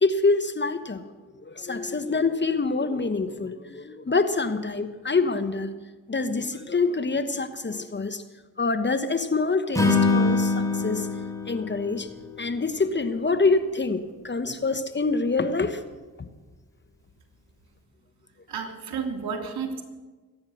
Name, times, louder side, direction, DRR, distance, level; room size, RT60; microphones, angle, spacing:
voice 1, 0.0-1.0 1.4-5.7 6.1-8.2 8.6-11.1 11.5-12.1 12.4-15.8 16.2-16.3, left 3 dB, 25° left, 10 dB, 1.2 m, -26 dB
Acoustic guitar / Strum, 9.7-13.0, left 3 dB, 10° left, 4.6 m, -24 dB
voice 2, 18.5-19.8, right 6 dB, 65° right, 3 dB, 3.2 m, -31 dB
23.0 x 9.6 x 6.5 m, 1.3 s
supercardioid pair, 50°, 40 cm